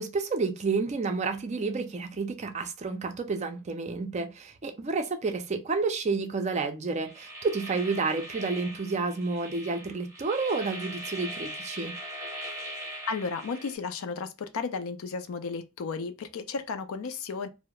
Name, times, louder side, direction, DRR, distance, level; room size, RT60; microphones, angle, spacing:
voice 1, 0.0-11.9, right 4 dB, 30° right, 0.4 m, -30 dB
sound 1, 7.0-13.8, right 1 dB, 15° right, 0.7 m, -40 dB
voice 2, 13.1-17.5, left 5 dB, 65° left, 0.4 m, -34 dB
2.3 x 2.0 x 2.8 m
head